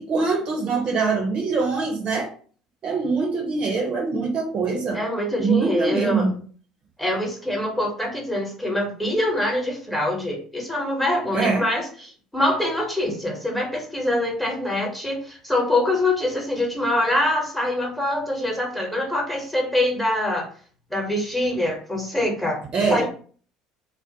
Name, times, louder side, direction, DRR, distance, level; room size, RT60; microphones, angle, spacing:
voice 1, 0.0-2.3 2.8-5.0 5.4-6.4 11.3-11.7 22.7-23.0, right 4 dB, 45° right, 1 dB, 0.7 m, -23 dB
voice 2, 4.9-6.3 7.0-20.5 20.9-22.6 22.9-23.1, left 1 dB, 5° left, -1 dB, 1.0 m, -24 dB
2.5 x 2.0 x 2.7 m, 0.43 s
hypercardioid pair, 65°, 2 cm